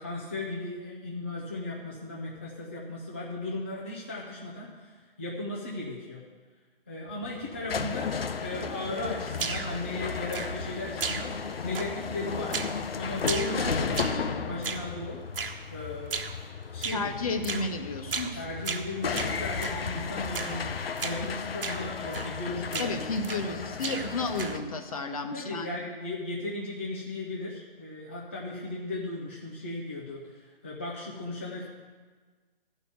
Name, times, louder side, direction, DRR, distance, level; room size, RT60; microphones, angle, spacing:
voice 1, 0.0-6.2 6.9-11.3 11.6-12.6 13.0-15.2 15.7-16.2 16.7-17.6 18.3-24.0 25.3-31.7, left 2 dB, 15° left, -4 dB, 0.4 m, -36 dB
sound 1, 7.1-24.6, left 5 dB, 80° left, 0.8 m, -35 dB
sound 2, 9.4-9.8 10.3-10.7 11.0-11.5 11.7-12.1 12.5-12.8 13.2-14.3 14.6-14.9 15.3-15.6 16.1-16.4 16.8-17.0 17.4-17.7 18.1-18.4 18.6-19.8 20.3-20.6 21.0-21.2 21.6-21.8 22.1-22.4 22.7-23.5 23.8-24.7, right 5 dB, 70° right, 1.2 m, -35 dB
voice 2, 16.9-18.4 22.8-25.7, left 3 dB, 40° left, 7 dB, 0.9 m, -32 dB
13.0 x 5.5 x 7.8 m, 1.5 s
hypercardioid pair, 160°, 29 cm